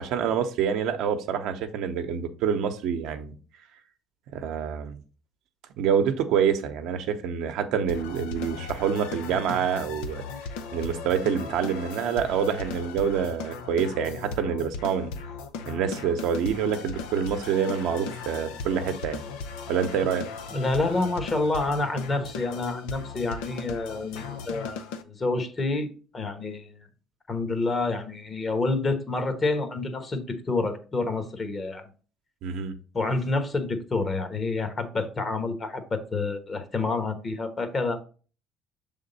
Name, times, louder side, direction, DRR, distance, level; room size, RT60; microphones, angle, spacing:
voice 1, 0.0-3.4 4.3-5.0 5.8-10.2 10.7-15.1 15.7-19.2 19.7-20.2 32.4-32.7, right 7 dB, 70° right, 7 dB, 0.8 m, -27 dB
sound 1, 7.9-25.0, left 5 dB, 85° left, 0.6 m, -37 dB
voice 2, 20.5-26.9 27.3-31.8 32.9-38.0, left 3 dB, 35° left, 8 dB, 1.3 m, -28 dB
6.5 x 3.6 x 4.0 m, 0.38 s
supercardioid pair, 80°, 0 cm